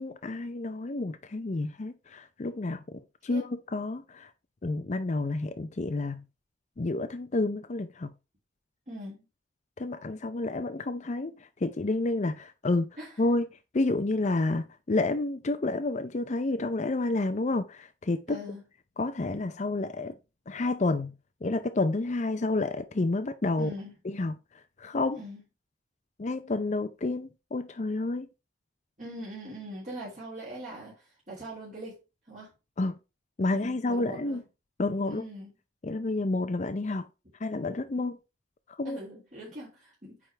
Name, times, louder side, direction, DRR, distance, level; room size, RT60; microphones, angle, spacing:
voice 1, 0.0-4.3 4.6-6.2 6.8-8.1 9.8-12.9 13.2-13.5 13.7-18.4 19.0-20.2 20.5-21.1 21.4-23.7 24.0-24.3 24.8-25.2 26.2-28.3 32.8-33.0 33.4-34.4 34.8-35.2 35.8-37.1 37.4-38.2 38.8-39.0, left 2 dB, 40° left, 0.5 m, -30 dB
voice 2, 8.9-9.2 13.0-13.2 18.3-18.6 23.6-23.9 25.1-25.4 29.0-32.0 32.3-32.5 33.5-34.4 35.0-35.5 38.0-38.1 38.8-40.3, right 1 dB, 40° right, 3.0 m, -42 dB
9.0 x 3.7 x 4.4 m
head